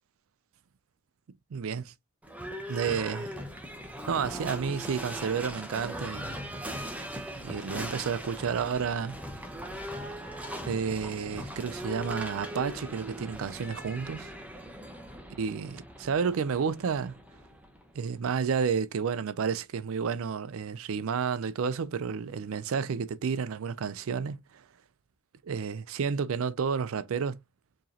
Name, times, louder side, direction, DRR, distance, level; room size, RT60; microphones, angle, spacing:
voice 1, 1.5-1.9 2.7-3.3 4.1-6.3 7.4-9.2 10.6-14.3 15.4-17.2 17.9-24.6 25.4-27.4, right 6 dB, 65° right, 0.4 m, -31 dB
Livestock farm animals working animals / Bell, 2.2-18.1, equal, 5° right, 0.8 m, -40 dB
4.7 x 3.1 x 2.8 m
head